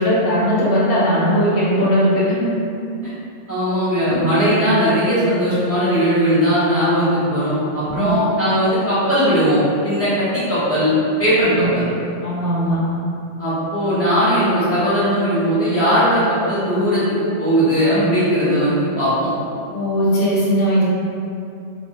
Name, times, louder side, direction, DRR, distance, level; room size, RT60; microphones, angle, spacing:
voice 1, 0.0-2.5 7.8-8.1 11.5-11.7 12.2-12.8 19.7-20.8, equal, 60° left, -7 dB, 0.7 m, -18 dB
voice 2, 3.5-10.9 11.2-11.8 13.4-17.0 17.4-19.3, equal, 15° left, -13 dB, 0.6 m, -18 dB
2.1 x 2.1 x 2.8 m, 2.6 s
omnidirectional pair, 1.2 m